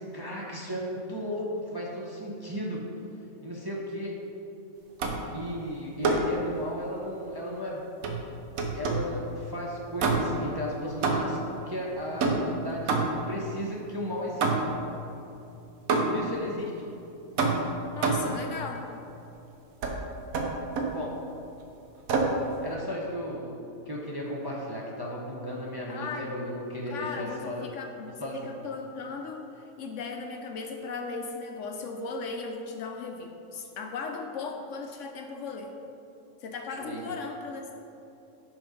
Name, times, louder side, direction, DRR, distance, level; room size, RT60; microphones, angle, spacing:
voice 1, 0.0-2.8 3.4-4.1 5.3-7.8 8.7-13.0 13.3-14.5 16.0-16.9 20.9-21.1 22.6-23.6 23.9-27.7 28.2-28.5 36.8-37.1, equal, 25° right, -4 dB, 0.6 m, -35 dB
sound 1, 5.0-5.4 6.0-6.4 8.0-9.2 10.0-10.5 11.0-11.5 12.2-13.4 14.4-14.9 15.9-16.4 17.4-18.4 19.8-20.0 20.3-21.0 22.1-22.4, right 3 dB, 80° right, 1.2 m, -27 dB
voice 2, 17.9-18.9 25.9-26.3 26.9-35.7 36.4-37.7, left 4 dB, 70° left, 3 dB, 0.9 m, -37 dB
6.2 x 5.1 x 5.1 m, 2.8 s
omnidirectional pair, 1.5 m